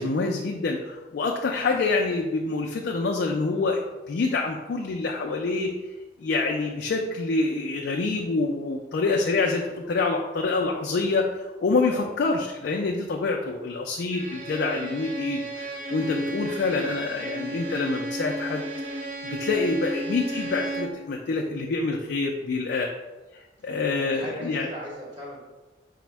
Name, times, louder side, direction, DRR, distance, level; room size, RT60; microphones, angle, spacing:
voice 1, 0.0-3.8 4.1-5.7 6.2-11.3 11.6-15.4 15.9-18.7 19.2-22.9 23.6-24.7, left 3 dB, 60° left, 1 dB, 0.4 m, -26 dB
voice 2, 1.5-2.2 11.9-12.1 17.1-17.3 23.6-25.4, equal, 25° right, -5 dB, 1.0 m, -40 dB
Bowed string instrument, 14.1-21.1, right 1 dB, 45° right, 0.4 m, -33 dB
4.9 x 2.1 x 4.4 m, 1.2 s
head